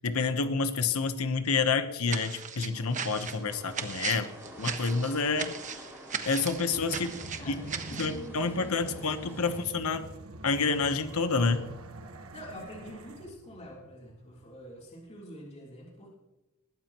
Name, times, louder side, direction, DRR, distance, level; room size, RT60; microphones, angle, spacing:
voice 1, 0.0-4.3 4.6-5.5 6.2-7.1 7.5-7.6 8.0-10.1 10.4-11.6, left 4 dB, 80° left, 9 dB, 1.1 m, -28 dB
sound 1, 2.1-8.2, right 6 dB, 35° right, 1.2 m, -37 dB
sound 2, 2.7-9.6, right 1 dB, 10° right, 5.5 m, -49 dB
voice 2, 4.0-5.5 7.3-9.6 12.3-16.1, equal, 30° left, -2 dB, 3.5 m, -47 dB
sound 3, 6.7-14.8, right 1 dB, 70° right, 1.3 m, -46 dB
20.5 x 14.5 x 3.0 m, 0.98 s
head